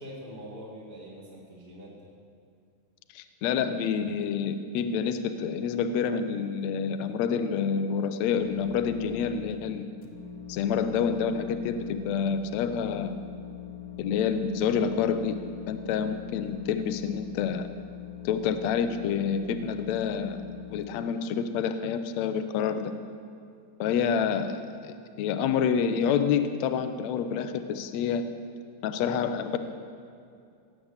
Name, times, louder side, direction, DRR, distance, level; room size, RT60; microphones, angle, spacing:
voice 1, 0.0-2.1, equal, 20° right, -5 dB, 1.6 m, -43 dB
voice 2, 3.1-9.9 10.5-13.2 14.0-15.4 15.7-17.7 18.2-20.4 20.7-22.9 23.8-28.3 28.8-29.6, left 7 dB, 75° left, 9 dB, 1.8 m, -28 dB
sound 1, 8.3-9.5 10.0-20.8, left 11 dB, 60° left, 1.8 m, -42 dB
17.0 x 7.8 x 8.0 m, 2.4 s
omnidirectional pair, 3.6 m